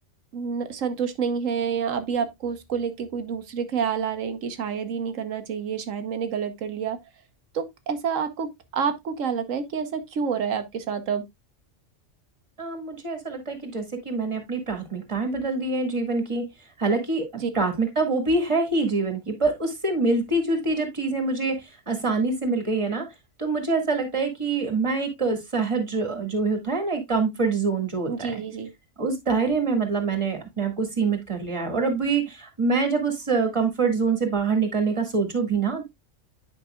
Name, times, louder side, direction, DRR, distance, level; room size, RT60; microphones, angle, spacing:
voice 1, 0.3-7.0 7.5-11.2 17.4-17.5 28.1-28.7, right 6 dB, 85° right, 1.4 m, -28 dB
voice 2, 12.6-16.5 16.8-17.3 17.5-21.6 21.9-23.1 23.4-28.4 29.0-35.8, right 4 dB, 25° right, 1.8 m, -25 dB
9.8 x 5.3 x 2.2 m
omnidirectional pair, 1.3 m